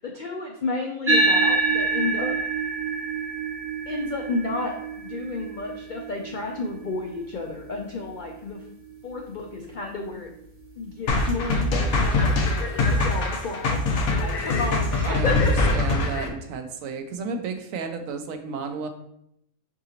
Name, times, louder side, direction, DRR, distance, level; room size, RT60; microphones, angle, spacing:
voice 1, 0.0-2.3 3.9-8.6 9.0-10.3 10.8-13.8 14.1-15.7, left 3 dB, 70° left, 1 dB, 0.4 m, -31 dB
sound 1, 1.1-9.8, right 3 dB, 15° right, 0.5 m, -28 dB
sound 2, 11.1-16.3, left 2 dB, 85° left, 1.2 m, -23 dB
voice 2, 15.1-18.9, right 5 dB, 75° right, 7 dB, 1.0 m, -33 dB
4.9 x 3.8 x 2.9 m, 0.75 s
omnidirectional pair, 1.5 m